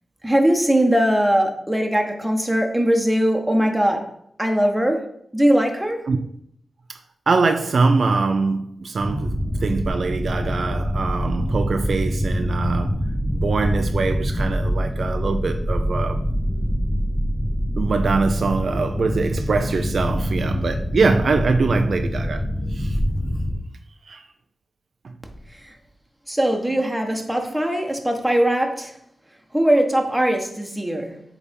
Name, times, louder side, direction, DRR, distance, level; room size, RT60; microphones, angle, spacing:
voice 1, 0.2-4.1 4.4-6.0 25.6-25.7 26.3-28.9 29.5-31.2, right 1 dB, 5° right, 1.4 m, -20 dB
voice 2, 7.3-16.2 17.8-22.4 22.7-23.0 24.1-24.2, right 4 dB, 65° right, 0.5 m, -23 dB
sound 1, 9.0-23.6, equal, 10° left, 1.0 m, -25 dB
8.2 x 3.5 x 5.4 m
cardioid pair, 70°, 0 cm